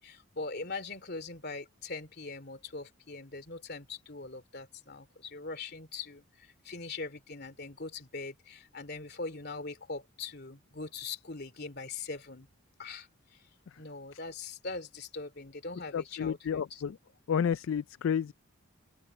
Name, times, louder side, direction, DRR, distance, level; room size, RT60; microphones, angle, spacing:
voice 1, 0.0-12.5 12.8-13.5 13.8-16.8, left 3 dB, 50° left, 3.0 m, -41 dB
voice 2, 15.9-16.9 17.3-18.3, left 7 dB, 65° left, 0.3 m, -30 dB
head